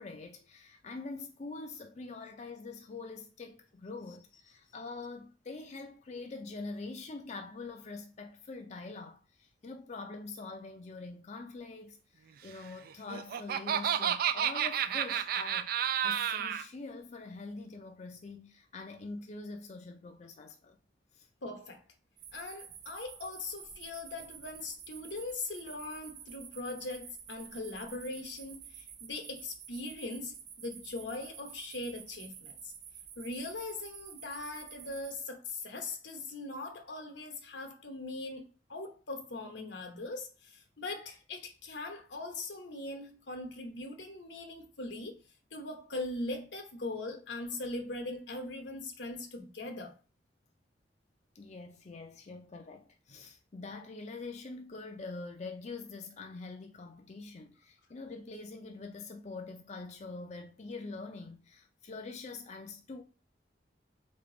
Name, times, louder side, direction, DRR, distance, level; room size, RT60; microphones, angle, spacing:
voice 1, 0.0-20.8 21.1-21.3 51.3-63.0, left 3 dB, 40° left, 0.5 m, -44 dB
Laughter, 12.9-16.6, right 9 dB, 55° right, 0.3 m, -31 dB
voice 2, 21.4-21.8 22.3-32.7 33.2-45.2 45.5-49.9, left 2 dB, 85° left, 1.0 m, -40 dB
sound 1, 22.2-35.2, right 8 dB, 70° right, 0.7 m, -50 dB
3.8 x 3.6 x 3.8 m
head